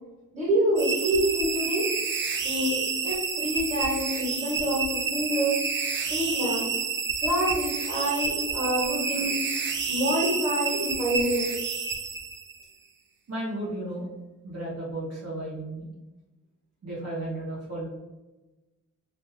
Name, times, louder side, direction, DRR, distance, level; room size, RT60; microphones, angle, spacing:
voice 1, 0.3-1.9 2.4-5.6 6.0-6.7 7.2-9.4 9.9-11.5, equal, 25° right, -5 dB, 1.2 m, -27 dB
sound 1, 0.8-12.6, right 5 dB, 40° right, 0.4 m, -29 dB
voice 2, 13.3-14.1 14.4-15.9 16.8-17.8, right 1 dB, 55° right, -7 dB, 0.8 m, -34 dB
2.5 x 2.2 x 3.1 m, 1.1 s
wide cardioid pair, 115°, 31 cm